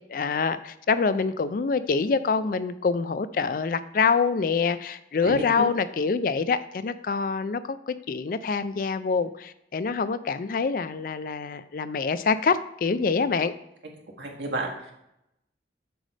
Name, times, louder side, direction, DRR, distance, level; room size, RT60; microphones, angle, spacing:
voice 1, 0.1-13.5, left 5 dB, 50° left, 13 dB, 0.4 m, -26 dB
voice 2, 5.2-5.6 14.2-14.9, right 1 dB, 90° right, 0 dB, 1.6 m, -31 dB
7.8 x 3.3 x 6.3 m, 0.81 s
head